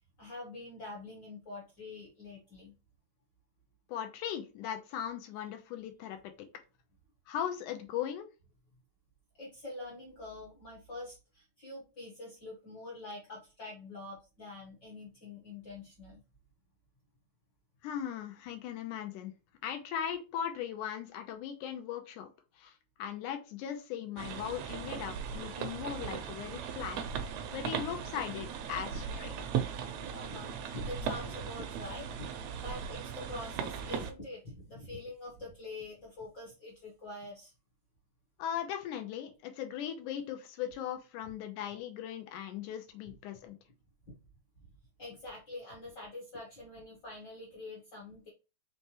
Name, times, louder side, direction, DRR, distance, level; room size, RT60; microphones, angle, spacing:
voice 1, 0.2-2.7 9.3-16.2 28.8-29.0 29.2-37.5 43.1-43.2 44.1-44.2 45.0-48.3, left 2 dB, 55° left, -3 dB, 1.2 m, -45 dB
voice 2, 3.9-6.3 7.3-8.3 17.8-19.4 19.6-22.3 22.6-29.3 38.4-43.6, left 9 dB, 90° left, 6 dB, 2.2 m, -38 dB
sound 1, 24.2-34.1, right 7 dB, 80° right, 1.6 m, -38 dB
5.4 x 3.3 x 2.9 m, 0.30 s
omnidirectional pair, 3.5 m